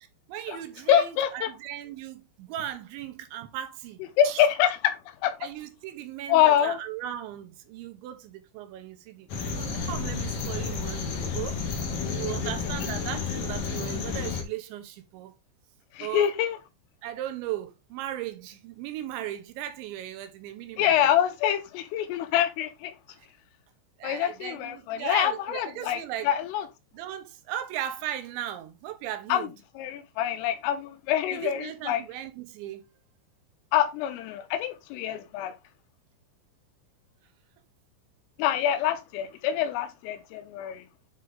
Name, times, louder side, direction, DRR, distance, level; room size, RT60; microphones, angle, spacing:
voice 1, 0.3-4.4 5.4-9.3 9.6-11.6 12.1-15.3 16.0-16.3 17.0-21.1 23.2-23.3 24.0-26.3 26.9-29.5 31.3-32.8, right 12 dB, 75° right, 3.1 m, -37 dB
voice 2, 0.9-1.5 4.2-5.4 6.3-6.8 12.3-12.4 16.0-16.6 20.8-23.0 24.0-26.0 26.3-26.7 29.3-29.5 29.8-32.0 33.7-35.5 38.4-40.8, left 10 dB, 85° left, 3.5 m, -25 dB
sound 1, 9.3-14.4, left 5 dB, 65° left, 1.8 m, -31 dB
9.3 x 4.0 x 3.9 m
omnidirectional pair, 5.8 m